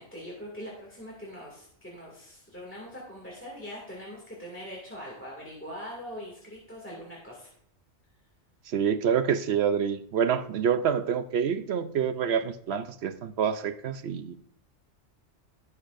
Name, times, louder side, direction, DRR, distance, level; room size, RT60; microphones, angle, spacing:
voice 1, 0.0-7.5, equal, 10° left, -4 dB, 2.2 m, -42 dB
voice 2, 8.7-14.4, right 7 dB, 65° right, 11 dB, 0.9 m, -27 dB
17.0 x 6.7 x 2.6 m, 0.70 s
omnidirectional pair, 1.2 m